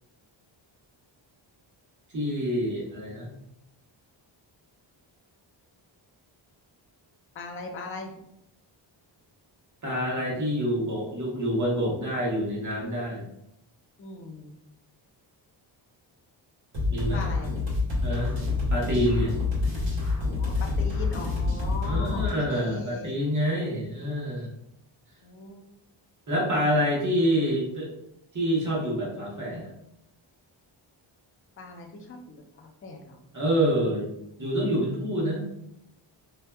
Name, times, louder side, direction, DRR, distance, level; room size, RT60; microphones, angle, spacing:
voice 1, 2.1-3.3 9.8-13.2 16.9-17.2 18.0-18.3 18.7-19.4 21.8-24.5 26.3-27.9 28.3-29.7 33.3-34.1 34.4-35.5, equal, 40° right, -4 dB, 1.0 m, -27 dB
voice 2, 7.4-8.1 14.0-14.5 17.1-17.5 20.1-23.1 25.2-25.6 31.6-33.2, left 3 dB, 30° left, 2 dB, 0.4 m, -40 dB
sound 1, 16.7-22.3, left 3 dB, 70° right, 1.2 m, -27 dB
2.6 x 2.2 x 2.2 m, 0.80 s
cardioid pair, 90°, 48 cm